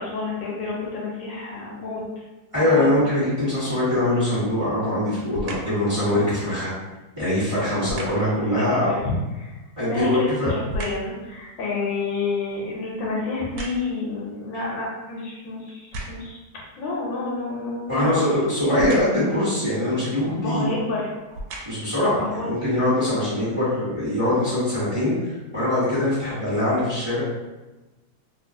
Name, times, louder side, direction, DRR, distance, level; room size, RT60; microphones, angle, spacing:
voice 1, 0.0-2.0 2.6-2.9 8.5-16.4 16.8-18.3 20.4-21.1 22.2-22.5, left 3 dB, 75° left, -3 dB, 1.3 m, -29 dB
voice 2, 2.5-6.7 7.2-8.9 9.8-10.5 17.9-20.7 21.6-27.2, left 1 dB, 15° right, -11 dB, 1.3 m, -22 dB
sound 1, 5.3-5.8 7.8-8.3 9.7-11.2 11.6-14.1 14.8-14.9 15.7-16.4 18.7-19.3 20.4-20.5 21.2-22.0 22.6-22.7, right 1 dB, 75° right, 1.2 m, -36 dB
2.9 x 2.8 x 2.6 m, 1.1 s
omnidirectional pair, 2.2 m